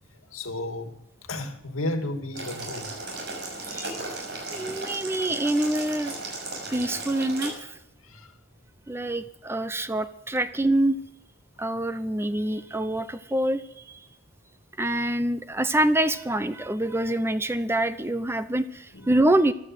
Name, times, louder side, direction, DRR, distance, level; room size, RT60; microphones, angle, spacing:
voice 1, 0.3-2.9 3.7-4.1 6.6-6.7 8.0-8.3 18.9-19.1, left 2 dB, 80° left, 2.3 m, -33 dB
Boiling, 2.3-7.5, right 3 dB, 50° right, 6.3 m, -35 dB
voice 2, 4.5-6.1 6.7-7.8 8.9-11.0 11.6-14.1 14.8-19.5, right 1 dB, 10° right, 0.6 m, -26 dB
15.0 x 12.0 x 7.7 m
head